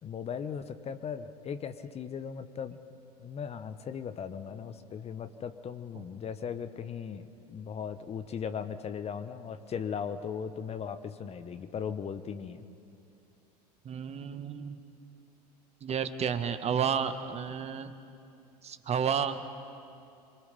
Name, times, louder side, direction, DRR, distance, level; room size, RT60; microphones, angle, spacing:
voice 1, 0.0-2.8 3.2-12.6, left 7 dB, 30° left, 11 dB, 1.1 m, -38 dB
voice 2, 13.8-14.8 15.8-17.9 18.6-19.4, right 7 dB, 30° right, 10 dB, 1.3 m, -31 dB
27.5 x 23.5 x 5.4 m, 2.6 s
hypercardioid pair, 80°, 21 cm